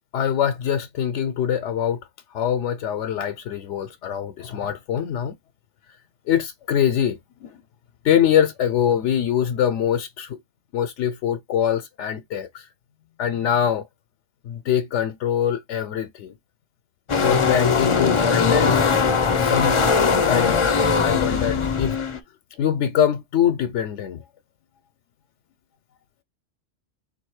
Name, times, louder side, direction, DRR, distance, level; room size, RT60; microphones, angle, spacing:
voice 1, 0.1-2.0 2.3-5.4 6.3-7.5 8.0-10.4 10.7-12.7 13.2-13.9 14.4-16.3 17.2-18.8 19.4-19.8 20.3-20.6 21.0-22.0 22.6-24.2, left 9 dB, 80° left, 0.9 m, -23 dB
sound 1, 17.1-22.2, left 5 dB, 40° left, 0.5 m, -20 dB
3.6 x 2.7 x 4.6 m
omnidirectional pair, 1.2 m